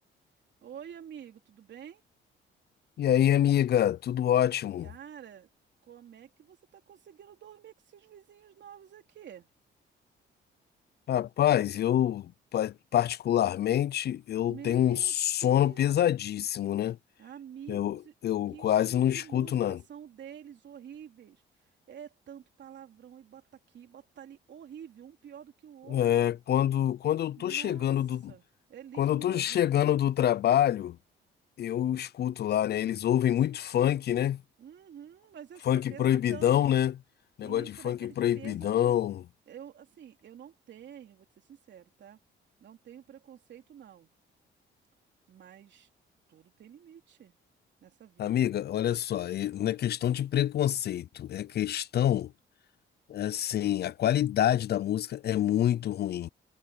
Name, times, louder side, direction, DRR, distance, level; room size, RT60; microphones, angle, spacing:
voice 1, 0.6-2.0 4.8-5.5 5.8-9.5 14.4-15.1 15.4-15.9 17.2-18.1 18.5-21.4 21.9-26.3 27.4-27.9 28.3-29.7 34.6-36.7 37.4-38.9 39.5-42.2 42.6-44.1 45.3-45.9 46.3-47.4 47.8-48.5, right 9 dB, 65° right, 3.5 m, -48 dB
voice 2, 3.0-4.9 11.1-17.0 17.7-19.8 25.9-28.3 29.0-31.0 31.6-34.4 35.7-36.9 37.4-39.2 48.2-52.3 53.1-56.3, left 11 dB, 55° left, 0.5 m, -26 dB
cardioid pair, 90°, 20 cm